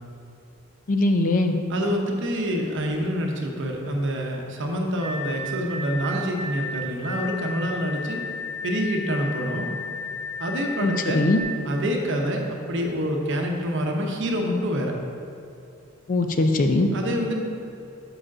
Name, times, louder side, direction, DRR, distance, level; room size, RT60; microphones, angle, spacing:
voice 1, 0.9-1.6 10.8-11.4 16.1-16.9, left 2 dB, 40° left, 6 dB, 0.4 m, -21 dB
voice 2, 1.7-8.2 8.6-9.7 10.4-11.3 11.6-14.9 16.9-17.4, equal, 60° right, 2 dB, 0.8 m, -26 dB
sound 1, 5.0-11.4, left 4 dB, 20° right, 0.8 m, -34 dB
5.0 x 4.9 x 6.0 m, 2.7 s
head